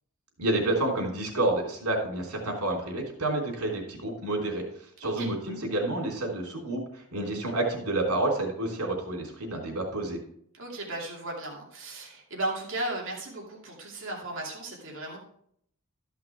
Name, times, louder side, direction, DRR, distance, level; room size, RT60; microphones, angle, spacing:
voice 1, 0.4-4.6 5.0-10.2, right 2 dB, 85° right, 0 dB, 3.3 m, -29 dB
voice 2, 10.5-15.2, right 2 dB, 60° right, -1 dB, 2.5 m, -35 dB
13.0 x 5.8 x 4.6 m, 0.68 s
head